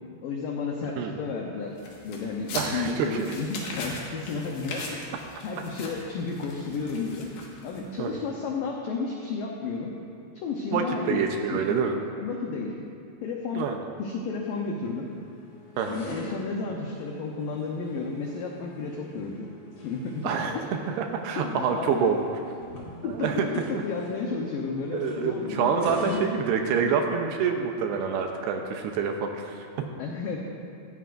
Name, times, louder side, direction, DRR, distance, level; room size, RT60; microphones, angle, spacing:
voice 1, 0.2-1.7 2.0-5.2 5.4-7.3 7.6-9.9 10.4-12.9 13.2-13.7 14.0-15.1 15.9-19.5 19.8-20.7 21.4-22.1 23.0-26.2 30.0-30.4, left 4 dB, 85° left, 0 dB, 1.9 m, -32 dB
sound 1, 1.8-8.0, left 3 dB, 60° left, 2.9 m, -39 dB
voice 2, 2.5-3.3 8.0-8.1 10.7-12.0 13.6-13.8 15.8-16.0 20.2-20.5 21.0-22.2 23.1-23.5 24.9-29.9, right 6 dB, 80° right, 4 dB, 2.6 m, -27 dB
sound 2, 14.3-27.2, left 1 dB, 35° left, 2.6 m, -46 dB
17.0 x 14.5 x 2.5 m, 2.5 s
omnidirectional pair, 5.1 m